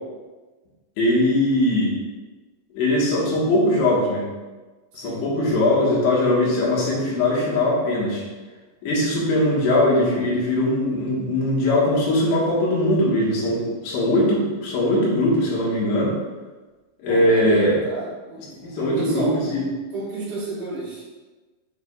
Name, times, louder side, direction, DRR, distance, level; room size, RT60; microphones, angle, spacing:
voice 1, 1.0-1.9 2.7-4.3 4.9-8.2 8.8-16.1 17.0-17.7 18.6-19.6, left 1 dB, 85° left, -5 dB, 3.9 m, -20 dB
voice 2, 4.9-5.3 17.1-19.6 19.9-21.1, right 2 dB, 60° right, -7 dB, 3.7 m, -31 dB
8.7 x 5.0 x 2.4 m, 1.3 s
omnidirectional pair, 5.1 m